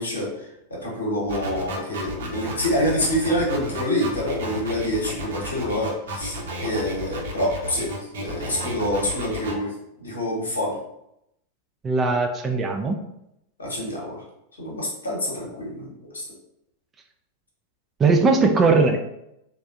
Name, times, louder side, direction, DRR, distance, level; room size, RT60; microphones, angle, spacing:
voice 1, 0.0-7.9 8.2-9.7 10.0-10.8 13.6-14.2 14.6-16.2, left 1 dB, 70° left, -3 dB, 0.9 m, -26 dB
sound 1, 1.3-9.5, right 1 dB, 60° right, 0.7 m, -33 dB
voice 2, 11.8-13.0 18.0-19.0, right 3 dB, 20° right, 5 dB, 0.3 m, -19 dB
3.3 x 2.1 x 2.4 m, 0.81 s
figure-of-eight pair, 90°, 0 cm